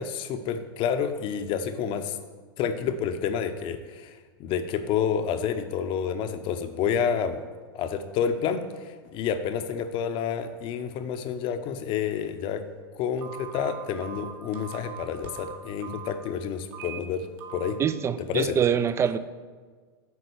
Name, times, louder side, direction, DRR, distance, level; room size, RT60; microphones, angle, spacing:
voice 1, 0.0-2.2 2.6-4.1 4.4-7.4 7.7-12.6 12.9-17.3 17.5-17.8 18.3-18.6, left 7 dB, 45° left, 9 dB, 0.8 m, -29 dB
Telephone, 13.2-16.1 16.7-17.0 17.4-17.7, right 8 dB, 60° right, 1.6 m, -40 dB
voice 2, 17.8-19.2, right 8 dB, 20° right, 14 dB, 0.4 m, -24 dB
9.3 x 3.8 x 7.0 m, 1.5 s
hypercardioid pair, 105°, 13 cm